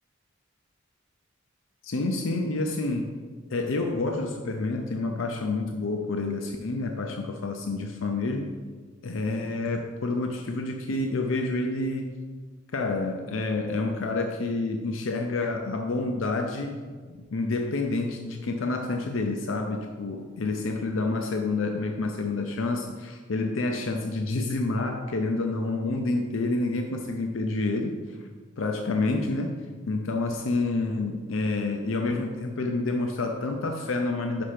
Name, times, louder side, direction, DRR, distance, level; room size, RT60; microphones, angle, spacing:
voice 1, 1.8-3.1 3.5-8.5 9.0-12.1 12.7-16.8 17.1-28.2 28.6-29.6 29.9-34.4, left 3 dB, 80° left, 3 dB, 0.6 m, -28 dB
5.8 x 5.6 x 5.0 m, 1.5 s
head